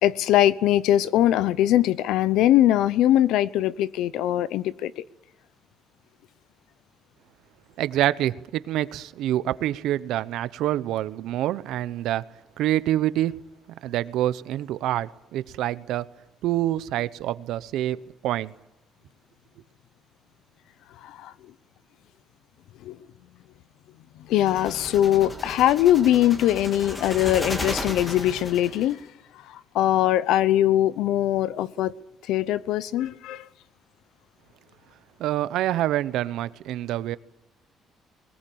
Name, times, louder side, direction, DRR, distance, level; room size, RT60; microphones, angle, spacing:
voice 1, 0.0-5.0 21.0-21.3 22.8-23.0 24.3-29.0 29.5-31.9 32.3-33.4, left 12 dB, 85° left, 0.8 m, -21 dB
voice 2, 7.8-12.2 12.6-13.3 13.8-16.1 16.4-18.5 35.2-37.2, right 13 dB, 75° right, 0.8 m, -26 dB
sound 1, 24.4-28.9, left 1 dB, 15° left, 2.1 m, -35 dB
21.5 x 19.5 x 8.7 m
cardioid pair, 165°, 0 cm